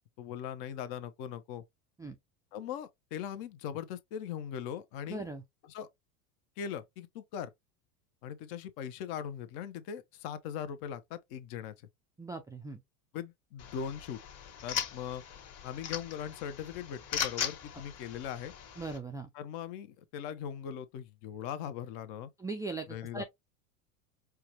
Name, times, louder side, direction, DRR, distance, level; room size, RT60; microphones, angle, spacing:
voice 1, 0.2-1.6 2.5-5.3 5.7-5.9 6.6-7.5 8.2-11.7 13.1-14.2 14.6-15.2 15.6-18.5 19.3-22.3 22.9-23.2, left 8 dB, 55° left, 0.8 m, -40 dB
voice 2, 5.1-5.4 12.2-12.8 18.8-19.3 22.4-23.2, right 3 dB, 10° right, 0.3 m, -39 dB
sound 1, 13.6-19.0, left 8 dB, 35° left, 1.4 m, -39 dB
4.7 x 2.2 x 2.9 m
hypercardioid pair, 105°, 44 cm